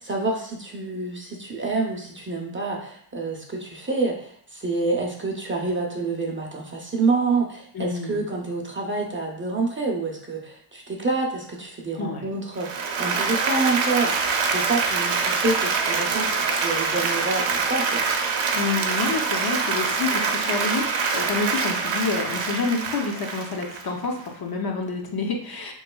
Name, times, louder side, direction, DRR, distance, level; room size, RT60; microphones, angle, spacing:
voice 1, 0.0-18.0, right 3 dB, 25° right, -1 dB, 0.5 m, -27 dB
voice 2, 7.7-8.2 12.0-12.3 18.5-25.7, left 4 dB, 50° left, 1 dB, 0.6 m, -28 dB
Applause, 12.5-24.3, right 5 dB, 75° right, 0.6 m, -25 dB
3.5 x 3.1 x 2.2 m, 0.63 s
cardioid pair, 90°, 48 cm